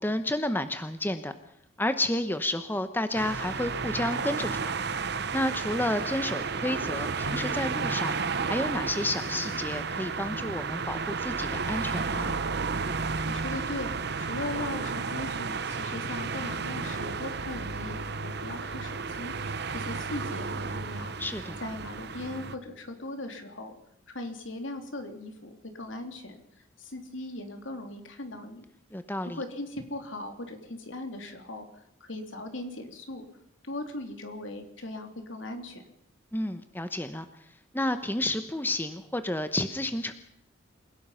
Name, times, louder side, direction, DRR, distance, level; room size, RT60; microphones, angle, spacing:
voice 1, 0.0-1.3 1.8-4.8 5.3-8.2 8.5-12.3 21.2-21.6 28.9-29.4 36.3-37.3 37.7-40.1, left 1 dB, 10° left, 10 dB, 0.9 m, -31 dB
sound 1, 3.1-22.6, right 4 dB, 55° right, 0.9 m, -32 dB
sound 2, 7.2-11.2, right 1 dB, 90° right, 7.2 m, -44 dB
voice 2, 13.3-21.1 21.6-23.8 24.1-26.4 26.8-28.6 29.3-33.3 33.6-35.8, left 2 dB, 70° left, 5 dB, 3.1 m, -39 dB
28.0 x 17.0 x 5.7 m, 0.75 s
head